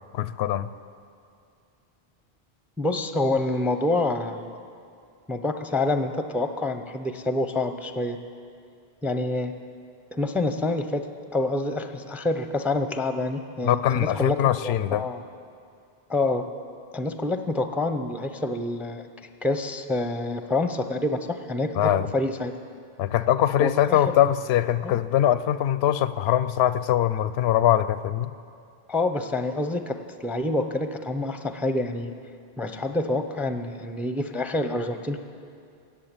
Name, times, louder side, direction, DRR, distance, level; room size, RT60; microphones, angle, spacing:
voice 1, 0.1-0.7 13.6-15.0 21.8-22.0 23.0-28.3, left 11 dB, 90° left, 14 dB, 0.8 m, -22 dB
voice 2, 2.8-4.6 5.3-8.2 9.0-9.5 10.1-11.1 11.3-15.2 16.1-16.5 16.9-19.1 19.4-22.5 23.6-24.2 24.8-24.9 28.9-32.1 32.6-35.2, left 2 dB, ahead, 8 dB, 0.4 m, -27 dB
16.5 x 7.4 x 8.9 m, 2.4 s
omnidirectional pair, 1.0 m